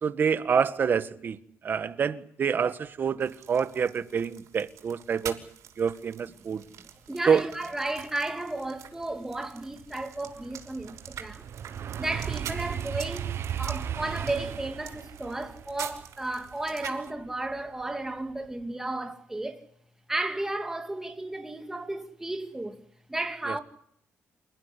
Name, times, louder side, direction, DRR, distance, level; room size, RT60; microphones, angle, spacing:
voice 1, 0.0-1.4 1.6-5.4 5.8-6.6 7.3-7.4 23.5-23.6, right 6 dB, 40° right, 1.6 m, -27 dB
sound 1, 3.2-17.1, right 10 dB, 85° right, 5.9 m, -46 dB
voice 2, 6.5-11.4 12.0-13.3 13.6-19.6 20.1-22.8 23.1-23.6, right 2 dB, 10° right, 2.6 m, -33 dB
sound 2, 8.2-8.3 8.8-17.8 18.2-18.6, right 9 dB, 55° right, 1.0 m, -37 dB
29.0 x 15.5 x 10.0 m
cardioid pair, 155°, 5 cm